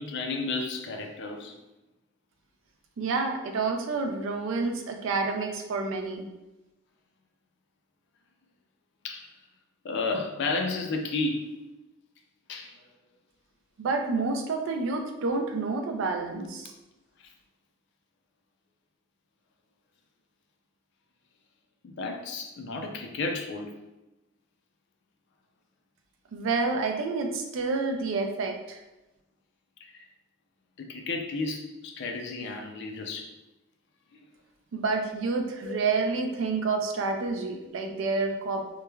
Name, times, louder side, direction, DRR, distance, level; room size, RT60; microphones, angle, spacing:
voice 1, 0.0-1.5 9.0-9.3 9.8-11.5 12.5-12.8 21.8-23.7 29.9-30.0 30.8-33.3 35.6-35.8, left 3 dB, 55° left, 3 dB, 0.4 m, -32 dB
voice 2, 3.0-6.3 13.8-16.7 26.3-28.8 34.7-38.6, right 3 dB, 60° right, 4 dB, 0.3 m, -29 dB
3.1 x 2.1 x 2.2 m, 1.0 s
head